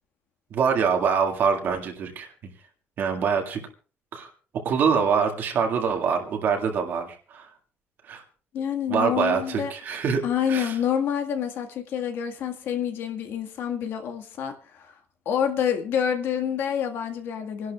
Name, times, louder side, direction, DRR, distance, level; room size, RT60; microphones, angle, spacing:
voice 1, 0.5-2.3 3.0-3.6 4.1-4.3 4.6-7.5 8.1-8.2 8.9-10.2 10.5-10.8, right 6 dB, 55° right, 3 dB, 2.0 m, -24 dB
voice 2, 8.5-9.7 10.2-14.9 15.2-17.7, left 8 dB, 65° left, 5 dB, 1.7 m, -27 dB
27.5 x 11.5 x 2.4 m, 0.37 s
cardioid pair, 170°, 4 cm